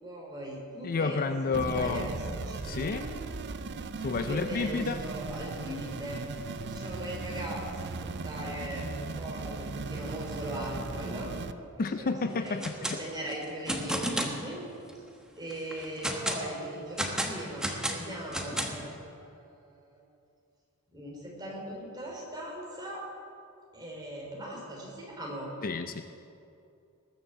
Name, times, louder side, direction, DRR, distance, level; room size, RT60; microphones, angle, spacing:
voice 1, 0.0-3.1 4.1-8.8 9.2-11.3 11.8-14.7 14.9-15.0 15.4-20.0 20.9-23.1 23.7-25.5, right 1 dB, 20° right, -2 dB, 3.6 m, -40 dB
voice 2, 0.8-2.1 2.6-3.0 4.0-5.0 11.8-13.0 25.6-26.0, left 4 dB, 40° left, 8 dB, 0.5 m, -30 dB
sound 1, 1.5-11.5, right 3 dB, 50° right, 0.6 m, -37 dB
sound 2, 12.5-13.0 13.3-14.4 14.9-15.0 15.5-16.4 17.0-18.9, equal, 5° right, 1.1 m, -32 dB
20.0 x 7.2 x 6.8 m, 2.5 s
head